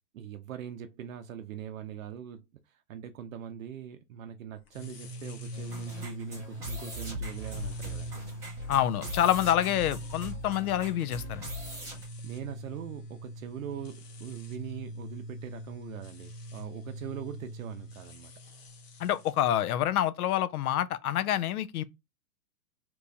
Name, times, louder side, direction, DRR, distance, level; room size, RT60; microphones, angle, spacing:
voice 1, 0.1-8.2 9.7-9.8 12.2-18.3, right 9 dB, 60° right, 0.6 m, -42 dB
sound 1, 4.7-19.4, equal, 45° left, 0.9 m, -43 dB
sound 2, 5.5-12.0, right 1 dB, 5° right, 0.5 m, -41 dB
voice 2, 8.7-11.5 19.0-21.8, left 11 dB, 75° left, 0.5 m, -27 dB
3.0 x 2.6 x 3.3 m
hypercardioid pair, 155°, 45 cm